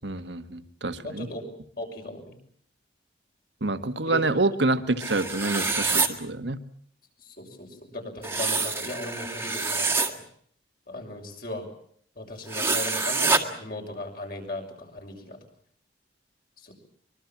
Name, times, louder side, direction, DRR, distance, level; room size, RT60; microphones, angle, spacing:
voice 1, 0.0-1.3 3.6-6.6, right 2 dB, 75° right, 9 dB, 1.7 m, -27 dB
voice 2, 1.0-1.4 1.8-2.4 4.0-4.2 7.2-10.2 10.9-11.6 12.2-15.4 16.6-16.7, left 1 dB, 50° left, 2 dB, 6.4 m, -37 dB
sound 1, 5.0-6.1 8.2-10.1 12.5-13.4, right 4 dB, 15° right, 1.8 m, -26 dB
24.0 x 22.5 x 7.3 m, 0.62 s
head